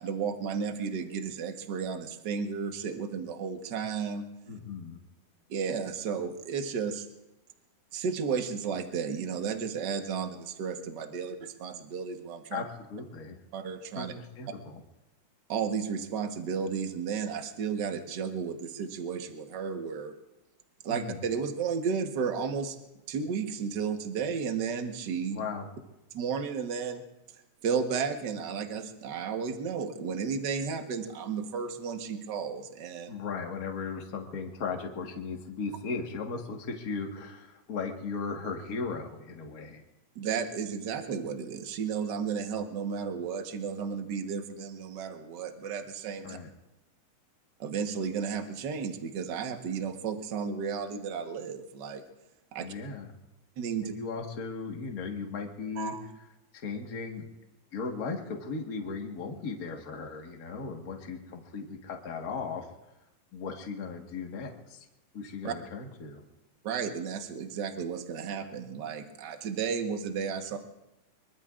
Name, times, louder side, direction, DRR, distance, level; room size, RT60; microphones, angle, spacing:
voice 1, 0.0-4.2 5.5-7.1 7.9-12.6 13.5-14.1 15.5-20.1 20.8-22.8 23.1-25.4 26.1-27.0 27.6-33.1 40.1-46.4 47.6-52.0 52.5-52.7 53.6-53.9 55.8-56.0 65.4-65.5 66.6-70.6, right 6 dB, 50° right, 5 dB, 1.3 m, -33 dB
voice 2, 4.5-5.0 12.5-13.4 13.9-14.8 20.9-21.2 25.3-25.7 33.1-39.8 46.2-46.5 52.6-53.1 53.8-55.9 56.5-57.3 57.7-62.6 63.3-64.8 65.1-66.2, left 4 dB, 40° left, 2 dB, 1.5 m, -37 dB
24.5 x 23.5 x 2.5 m, 0.98 s
omnidirectional pair, 3.4 m